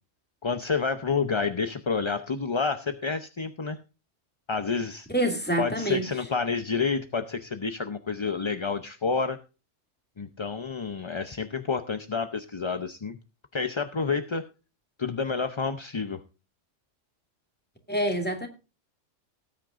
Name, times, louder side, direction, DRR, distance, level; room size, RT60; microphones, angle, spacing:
voice 1, 0.4-3.8 4.5-5.1 5.6-9.4 10.2-13.2 13.5-14.4 15.0-16.2, left 5 dB, 35° left, 0.5 m, -29 dB
voice 2, 5.1-6.1 17.9-18.5, right 1 dB, 10° left, 2.3 m, -26 dB
18.5 x 8.9 x 2.5 m
omnidirectional pair, 1.3 m